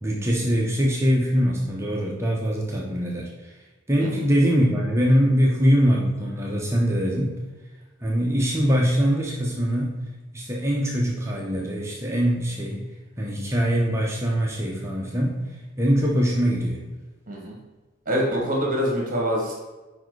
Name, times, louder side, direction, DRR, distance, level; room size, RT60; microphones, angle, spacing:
voice 1, 0.0-3.5 3.9-7.3 8.0-10.0 10.3-12.9 13.2-15.3 15.8-16.8, equal, 15° right, -3 dB, 0.7 m, -22 dB
voice 2, 18.1-19.5, equal, 40° right, -1 dB, 1.2 m, -25 dB
5.1 x 4.3 x 4.6 m, 1.2 s
head